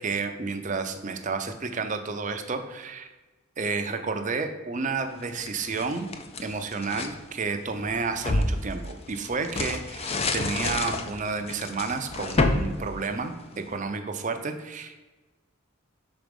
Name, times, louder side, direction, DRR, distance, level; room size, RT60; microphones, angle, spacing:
voice 1, 0.0-3.1 3.6-6.1 6.4-14.9, right 4 dB, 35° right, 7 dB, 0.6 m, -31 dB
sound 1, 5.2-7.2 7.7-13.7, left 2 dB, 30° left, 0.5 m, -29 dB
6.1 x 4.1 x 5.2 m, 1.2 s
head